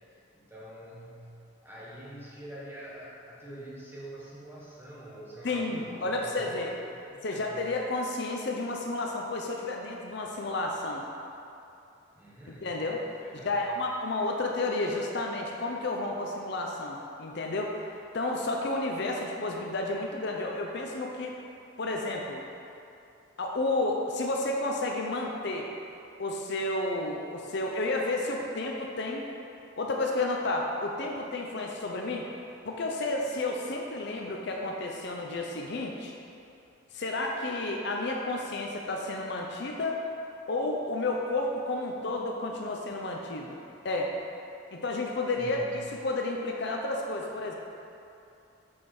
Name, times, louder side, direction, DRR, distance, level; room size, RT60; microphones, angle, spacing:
voice 1, 0.1-1.3 1.6-7.6 12.1-12.8 13.2-13.6 45.4-45.9, right 1 dB, 10° right, -7 dB, 1.2 m, -46 dB
voice 2, 5.4-6.7 7.2-11.0 12.6-13.0 13.4-17.8 18.1-21.3 21.8-22.4 23.4-25.7 26.2-29.2 29.8-32.3 32.7-36.1 36.9-40.0 40.5-43.6 43.8-44.1 44.7-47.6, left 2 dB, 55° left, 0 dB, 0.6 m, -31 dB
7.3 x 4.8 x 4.4 m, 2.6 s
head